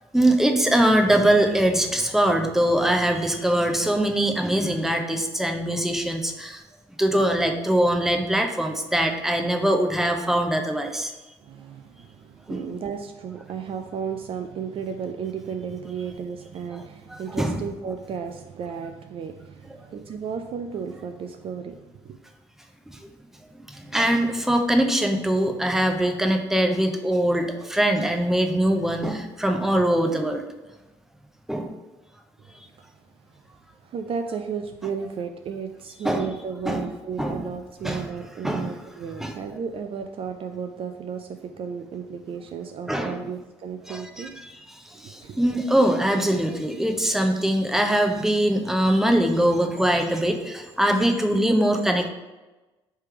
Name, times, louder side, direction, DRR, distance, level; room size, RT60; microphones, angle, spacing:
voice 1, 0.1-6.6 7.0-11.1 12.5-12.6 17.1-17.6 22.9-23.0 23.7-30.4 31.5-31.7 36.0-36.3 36.7-36.9 37.2-37.4 37.8-38.1 38.4-38.7 39.2-39.3 42.9-43.2 43.9-44.3 44.9-52.1, right 1 dB, 5° right, 4 dB, 0.6 m, -22 dB
voice 2, 11.4-22.2 32.8-32.9 33.8-44.3 45.0-45.4, right 6 dB, 45° right, 6 dB, 0.4 m, -34 dB
3.3 x 3.3 x 4.4 m, 1.1 s
hypercardioid pair, 55°, 13 cm